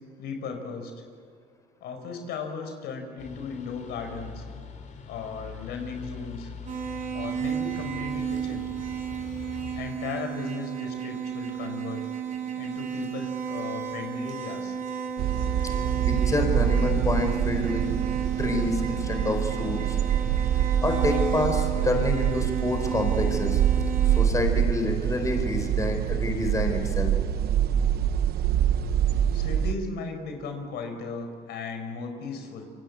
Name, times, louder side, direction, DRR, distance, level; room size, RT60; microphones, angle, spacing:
voice 1, 0.2-0.9 1.8-4.4 5.1-6.5 7.1-8.7 9.7-12.1 12.6-14.8 29.2-32.7, left 4 dB, 75° left, 5 dB, 4.8 m, -36 dB
sound 1, 3.2-9.9, left 6 dB, 45° left, 3.3 m, -43 dB
sound 2, 6.7-24.3, right 8 dB, 45° right, 3.6 m, -33 dB
sound 3, 15.2-29.7, right 10 dB, 70° right, 0.9 m, -25 dB
voice 2, 16.1-17.9 18.4-20.0 20.8-23.6 24.0-27.1, left 2 dB, 20° left, 4 dB, 4.4 m, -28 dB
28.0 x 24.0 x 8.3 m, 2.1 s
cardioid pair, 110°, 17 cm